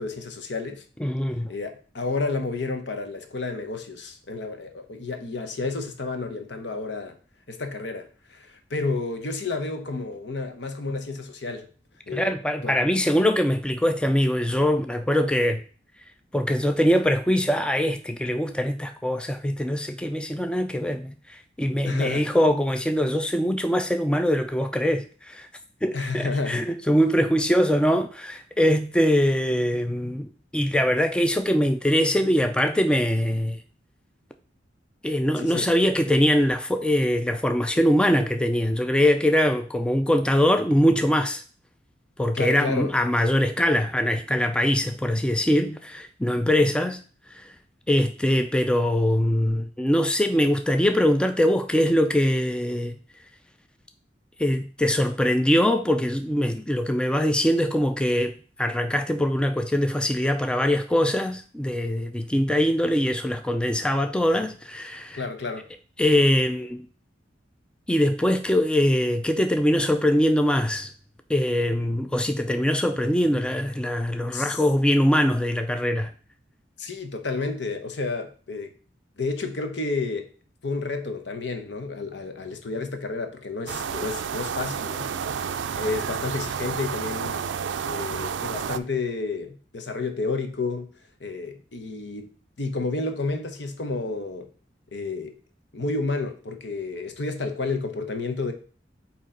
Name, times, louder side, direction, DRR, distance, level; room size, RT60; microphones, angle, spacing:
voice 1, 0.0-0.8 1.5-7.2 7.5-11.7 12.1-12.3 12.6-12.8 21.8-22.2 25.9-26.6 35.4-35.7 42.3-42.9 65.1-65.7 74.3-74.6 76.8-78.7 79.2-80.3 80.6-85.4 85.8-87.4 87.8-90.9 91.2-92.3 92.6-94.5 94.9-95.3 95.7-98.5, left 3 dB, 70° left, 0.9 m, -30 dB
voice 2, 1.0-1.5 12.1-15.6 16.3-25.5 25.8-33.6 35.0-41.4 42.2-47.0 47.3-47.6 47.9-52.9 54.4-65.2 66.0-66.9 67.9-70.9 71.3-76.1, equal, 5° left, 0.3 m, -22 dB
sound 1, 83.7-88.8, right 7 dB, 85° right, 0.4 m, -30 dB
8.5 x 3.0 x 3.8 m
head